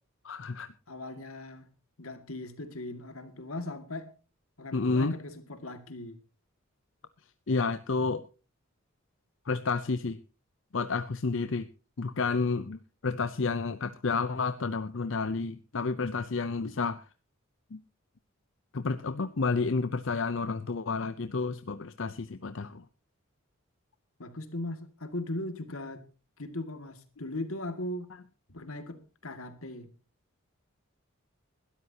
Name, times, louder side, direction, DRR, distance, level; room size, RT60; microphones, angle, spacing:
voice 1, 0.2-0.7 4.7-5.2 7.5-8.2 9.5-10.2 10.7-11.7 12.0-17.0 17.7-17.8 18.7-22.8, left 4 dB, 65° left, 12 dB, 0.6 m, -30 dB
voice 2, 0.9-1.7 2.0-4.1 4.6-6.2 24.2-26.0 26.4-28.1 28.5-29.9, left 1 dB, 85° left, 9 dB, 2.1 m, -38 dB
21.0 x 12.5 x 2.9 m, 0.34 s
head